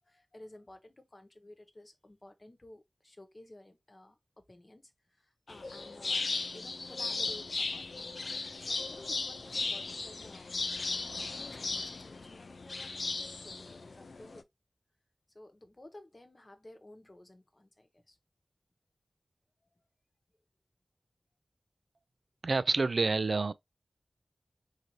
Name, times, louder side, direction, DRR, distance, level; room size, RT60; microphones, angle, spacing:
voice 1, 0.0-6.3 6.5-8.2 8.6-10.5 11.0-14.5 15.3-18.2 19.6-19.8, left 1 dB, 35° left, 0.9 m, -54 dB
sound 1, 5.5-14.4, left 3 dB, 80° left, 0.4 m, -37 dB
voice 2, 22.4-23.5, right 3 dB, 70° right, 0.3 m, -28 dB
3.9 x 2.7 x 3.0 m
wide cardioid pair, 55°, 0 cm